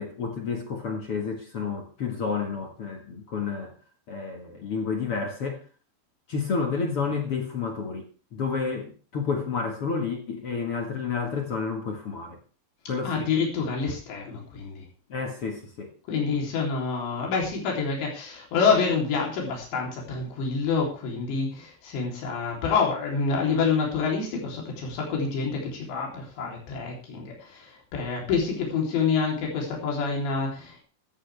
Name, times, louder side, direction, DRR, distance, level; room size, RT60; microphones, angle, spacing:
voice 1, 0.0-3.7 4.1-5.6 6.3-12.4 12.9-13.3 15.1-15.9, left 5 dB, 50° left, 1.7 m, -30 dB
voice 2, 13.0-14.8 16.1-30.8, left 5 dB, 90° left, 5.7 m, -27 dB
15.0 x 14.0 x 3.5 m
omnidirectional pair, 4.9 m